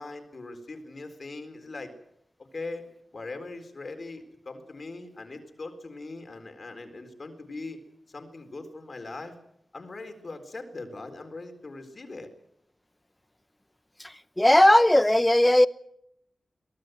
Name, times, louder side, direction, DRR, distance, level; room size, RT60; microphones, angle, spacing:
voice 1, 0.0-1.9 2.4-2.8 3.1-7.8 8.1-9.4 9.7-12.3, left 3 dB, 50° left, 4.0 m, -40 dB
voice 2, 14.0-15.7, left 1 dB, 10° left, 0.8 m, -18 dB
23.5 x 19.0 x 7.9 m
wide cardioid pair, 85°, 0 cm